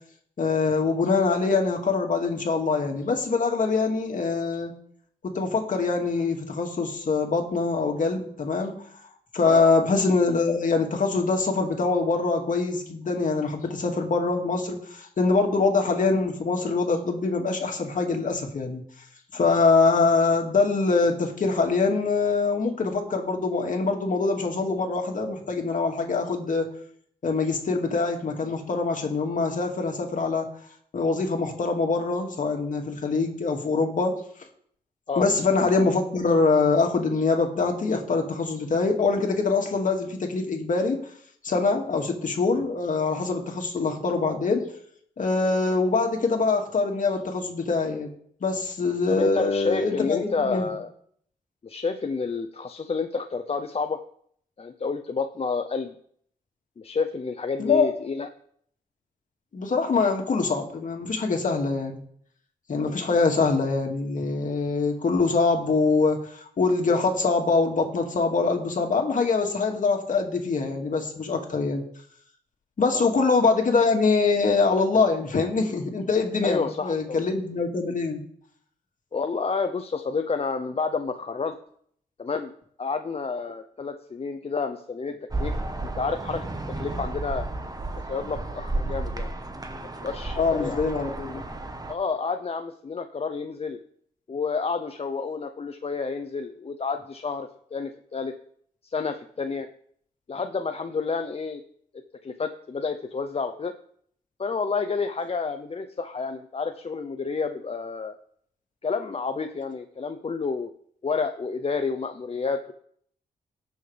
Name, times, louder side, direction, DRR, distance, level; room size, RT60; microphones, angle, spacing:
voice 1, 0.4-4.8 5.2-8.8 9.3-18.8 19.3-26.7 27.2-30.5 30.9-34.2 35.2-41.0 41.4-44.7 45.2-48.1 48.4-50.7 57.6-57.9 59.5-62.0 62.7-71.8 72.8-78.2 90.4-91.4, left 4 dB, 55° left, 2 dB, 2.3 m, -24 dB
voice 2, 49.1-50.9 51.6-54.0 54.6-55.9 56.8-58.3 63.0-63.2 72.9-73.1 76.4-77.2 79.1-81.6 82.2-82.5 82.8-85.5 86.0-86.4 86.7-87.5 88.1-89.3 90.0-90.8 91.9-93.8 94.3-98.3 98.8-99.7 100.3-101.6 102.2-103.7 104.4-108.1 108.8-110.7 111.0-112.7, left 4 dB, 40° left, 7 dB, 0.7 m, -30 dB
sound 1, 85.3-91.9, right 2 dB, 25° right, 1.3 m, -32 dB
18.0 x 6.4 x 3.4 m, 0.65 s
supercardioid pair, 55°, 16 cm